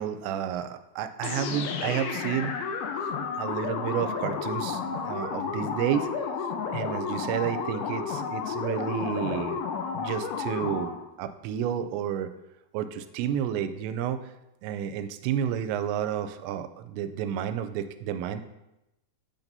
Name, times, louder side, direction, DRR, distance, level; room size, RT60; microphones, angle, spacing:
voice 1, 0.0-2.8 3.4-6.1 6.7-9.6 10.0-10.9 11.2-12.3 12.7-14.2 14.6-18.4, right 9 dB, 90° right, 11 dB, 2.8 m, -31 dB
sound 1, 1.2-11.1, left 5 dB, 80° left, 2.2 m, -32 dB
8.7 x 7.3 x 2.7 m, 0.91 s
omnidirectional pair, 5.0 m